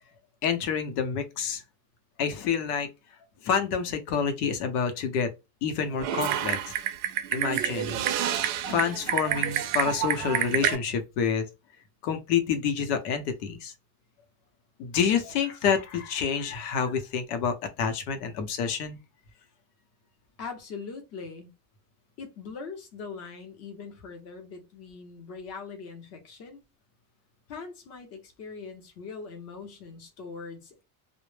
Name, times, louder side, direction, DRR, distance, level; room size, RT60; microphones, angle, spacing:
voice 1, 0.4-1.6 2.2-2.9 3.4-5.3 5.6-6.6 7.3-8.0 8.7-11.5 12.0-13.7 14.8-19.0, left 7 dB, 90° left, 0.8 m, -28 dB
Typing, 6.0-10.8, right 11 dB, 55° right, 0.5 m, -28 dB
voice 2, 20.4-21.5 22.2-26.6 27.5-30.8, left 5 dB, 35° left, 0.6 m, -41 dB
2.0 x 2.0 x 3.1 m
cardioid pair, 175°, 46 cm